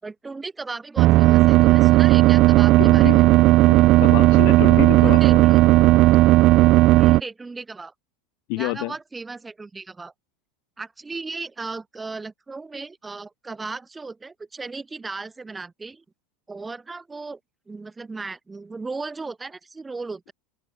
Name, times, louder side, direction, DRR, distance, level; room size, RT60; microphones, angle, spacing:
voice 1, 0.0-3.2 5.0-5.6 7.0-7.9 8.6-10.1 10.8-16.0 16.5-17.4 17.7-20.3, right 3 dB, 10° right, 6.5 m, -36 dB
sound 1, 1.0-7.2, right 18 dB, 45° right, 1.3 m, -14 dB
voice 2, 2.8-3.3 3.7-5.5 8.5-8.9, left 40 dB or more, 60° left, 4.0 m, -28 dB
supercardioid pair, 140°, 0 cm